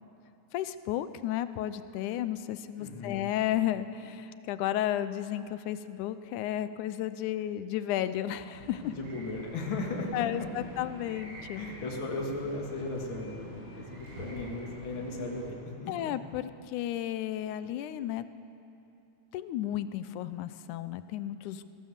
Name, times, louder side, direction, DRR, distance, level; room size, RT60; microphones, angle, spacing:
voice 1, 0.5-8.9 10.1-11.6 15.9-18.3 19.3-21.7, left 12 dB, 80° left, 13 dB, 2.1 m, -33 dB
voice 2, 2.8-3.2 8.8-10.5 11.5-16.1, left 2 dB, 40° left, 0 dB, 2.9 m, -36 dB
sound 1, 8.6-15.5, equal, 30° right, 6.3 m, -47 dB
23.0 x 18.5 x 7.4 m, 2.8 s
omnidirectional pair, 3.6 m